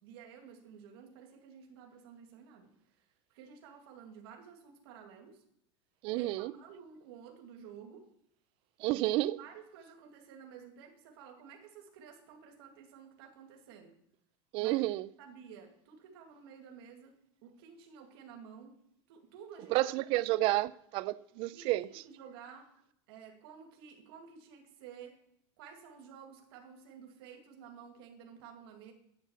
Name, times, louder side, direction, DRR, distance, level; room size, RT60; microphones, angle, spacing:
voice 1, 0.0-2.7 2.9-5.4 6.1-8.1 9.4-14.0 14.6-14.8 15.2-17.1 17.4-18.8 19.1-19.9 20.3-20.5 21.6-22.7 23.1-25.2 25.6-28.9, right 7 dB, 70° right, 2.4 m, -52 dB
voice 2, 6.0-6.5 8.8-9.4 14.5-15.1 19.7-21.9, right 17 dB, 40° right, 0.5 m, -30 dB
9.7 x 9.1 x 7.1 m
supercardioid pair, 160°, 13 cm